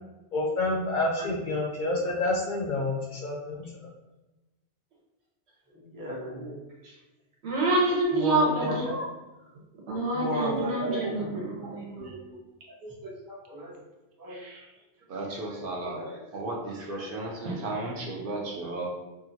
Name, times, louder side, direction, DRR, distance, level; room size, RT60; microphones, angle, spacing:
voice 1, 0.3-3.9, left 2 dB, 60° left, -2 dB, 0.5 m, -28 dB
voice 2, 5.7-6.6 8.1-9.1 10.1-11.4 12.8-13.8 14.2-14.4 15.8-16.1, equal, 25° right, -5 dB, 0.6 m, -33 dB
voice 3, 7.4-8.8 9.9-12.1 17.4-17.6, right 2 dB, 90° right, -3 dB, 1.1 m, -27 dB
voice 4, 14.3-14.7 15.1-18.9, right 2 dB, 60° right, -1 dB, 0.6 m, -35 dB
2.8 x 2.4 x 2.6 m, 1.1 s
omnidirectional pair, 1.1 m